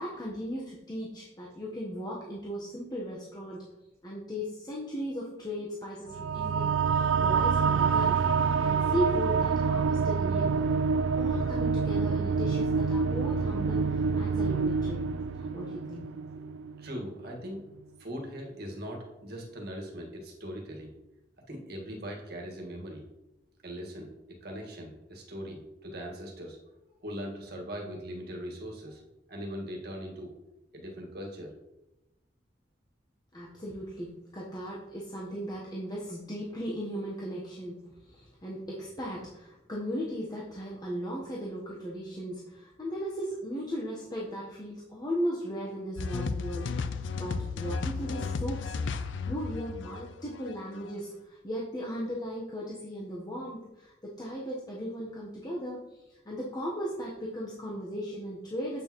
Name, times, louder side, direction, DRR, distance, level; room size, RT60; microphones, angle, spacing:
voice 1, 0.0-3.6 4.0-10.7 11.2-15.0 15.5-16.0 33.3-48.7 49.3-58.8, equal, 20° left, -5 dB, 1.0 m, -37 dB
sound 1, 6.1-17.0, right 5 dB, 80° right, 0.3 m, -27 dB
voice 2, 16.8-17.6 18.0-20.9 21.5-23.0 23.6-26.6 26.8-29.0 29.3-30.3 30.7-31.5, equal, 55° right, 0 dB, 1.6 m, -40 dB
sound 2, 46.0-50.9, left 4 dB, 75° left, 0.5 m, -34 dB
8.6 x 6.3 x 3.0 m, 0.96 s
head